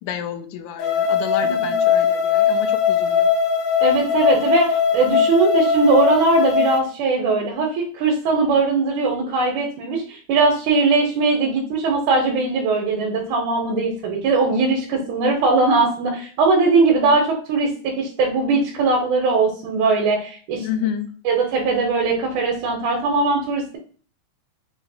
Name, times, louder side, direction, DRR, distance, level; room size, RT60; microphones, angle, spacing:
voice 1, 0.0-3.3 20.6-21.1, left 9 dB, 85° left, 8 dB, 2.0 m, -30 dB
sound 1, 0.8-6.8, left 7 dB, 70° left, 1.3 m, -19 dB
voice 2, 3.8-20.7 21.3-23.8, right 3 dB, 90° right, -1 dB, 2.2 m, -20 dB
6.0 x 2.6 x 2.4 m, 0.41 s
omnidirectional pair, 3.4 m